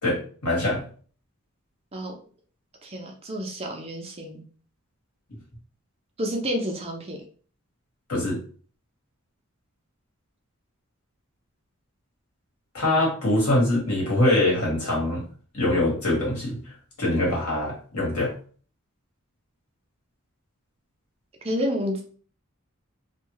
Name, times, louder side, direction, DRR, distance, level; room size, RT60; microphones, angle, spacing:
voice 1, 0.0-0.9 8.1-8.4 12.7-15.2 15.5-16.6 17.0-18.3, left 1 dB, 85° left, -3 dB, 1.6 m, -23 dB
voice 2, 2.8-4.4 6.2-7.2 21.4-22.0, equal, 25° right, 1 dB, 0.6 m, -29 dB
3.3 x 2.3 x 3.1 m, 0.42 s
head